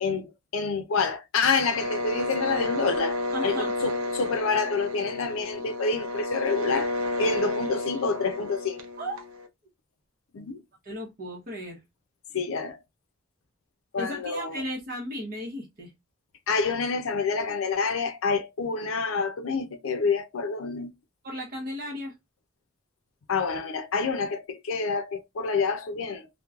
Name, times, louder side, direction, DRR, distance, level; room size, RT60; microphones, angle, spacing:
voice 1, 0.0-8.8 10.3-10.6 12.3-12.8 13.9-14.6 16.5-20.9 23.3-26.3, left 4 dB, 70° left, 0.5 m, -28 dB
sound 1, 1.7-9.5, left 2 dB, 70° right, 0.6 m, -31 dB
voice 2, 3.3-3.7 9.0-9.2 10.8-11.8 14.0-15.9 21.2-22.1, equal, 45° right, 0.9 m, -35 dB
3.0 x 2.1 x 2.4 m
head